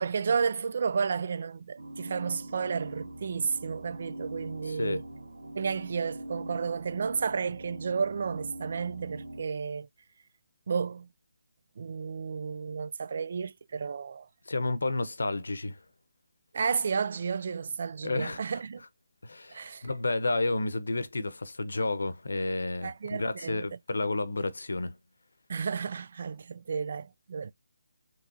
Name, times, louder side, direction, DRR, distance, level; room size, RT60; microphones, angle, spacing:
voice 1, 0.0-5.0 5.5-9.9 10.7-11.1 11.8-14.3 16.5-18.8 19.5-19.9 22.8-23.6 25.5-27.5, right 6 dB, 45° right, 0.3 m, -32 dB
sound 1, 1.8-9.4, right 1 dB, 80° right, 0.8 m, -43 dB
voice 2, 4.7-5.0 14.5-15.8 18.0-18.4 19.2-25.0, left 2 dB, 80° left, 0.8 m, -31 dB
4.7 x 3.2 x 2.7 m
hypercardioid pair, 170°, 0 cm